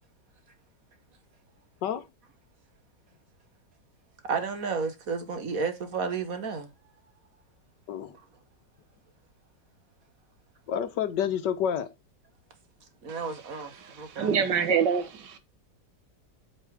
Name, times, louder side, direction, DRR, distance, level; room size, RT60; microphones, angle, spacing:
voice 1, 4.2-6.7 13.0-14.3, right 5 dB, 55° right, 1.7 m, -32 dB
voice 2, 10.7-11.9, left 9 dB, 80° left, 1.6 m, -28 dB
voice 3, 13.8-15.4, right 6 dB, 80° right, 1.8 m, -26 dB
8.3 x 6.3 x 3.5 m
omnidirectional pair, 1.9 m